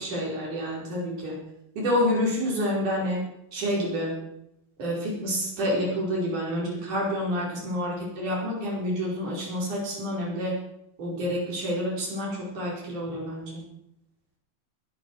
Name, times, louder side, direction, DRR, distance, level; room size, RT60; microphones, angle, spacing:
voice 1, 0.0-1.4 1.7-3.2 3.5-4.1 4.8-10.5 11.0-13.6, equal, 60° right, -3 dB, 6.2 m, -28 dB
21.0 x 12.0 x 4.8 m, 0.81 s
omnidirectional pair, 4.0 m